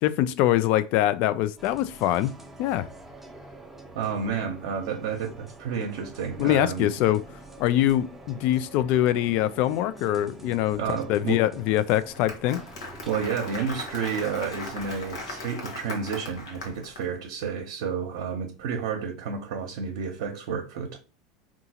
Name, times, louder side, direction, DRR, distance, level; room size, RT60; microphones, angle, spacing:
voice 1, 0.0-2.3 2.6-2.9 6.4-7.2 7.6-12.6, left 13 dB, 55° left, 0.3 m, -24 dB
sound 1, 1.6-15.5, right 2 dB, 10° right, 0.6 m, -46 dB
voice 2, 3.9-6.9 10.8-11.4 13.1-21.0, right 6 dB, 70° right, 0.6 m, -31 dB
Applause, 11.9-17.0, left 2 dB, 85° left, 0.9 m, -38 dB
3.7 x 2.4 x 2.8 m
hypercardioid pair, 100°, 3 cm